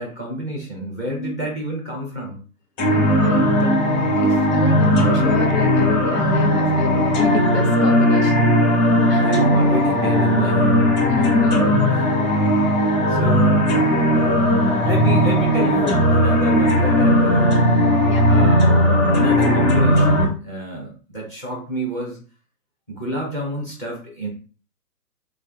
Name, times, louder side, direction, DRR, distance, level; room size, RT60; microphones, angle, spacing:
voice 1, 0.0-2.4 3.3-3.7 8.8-10.9 11.9-12.1 12.6-12.7 13.1-13.6 14.1-17.6 18.2-18.8 19.1-22.2 22.9-24.3, right 1 dB, 10° left, -1 dB, 0.4 m, -28 dB
voice 2, 1.1-1.5 2.9-3.8 4.2-8.5 9.1-9.2 11.0-11.6 18.0-18.3, left 3 dB, 80° left, 2 dB, 1.2 m, -27 dB
sound 1, 2.8-20.2, equal, 25° left, 1.5 m, -17 dB
3.2 x 2.3 x 3.5 m, 0.38 s
hypercardioid pair, 135°, 48 cm